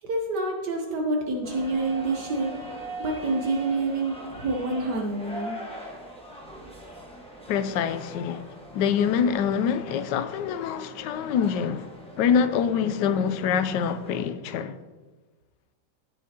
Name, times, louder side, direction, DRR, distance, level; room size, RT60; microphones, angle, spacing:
voice 1, 0.0-2.5 3.0-5.5, right 2 dB, 70° right, 1.5 m, -27 dB
sound 1, 1.4-14.2, right 1 dB, 5° left, 1.1 m, -42 dB
voice 2, 7.5-14.8, left 7 dB, 80° left, 1.2 m, -25 dB
15.5 x 6.3 x 2.9 m
omnidirectional pair, 1.9 m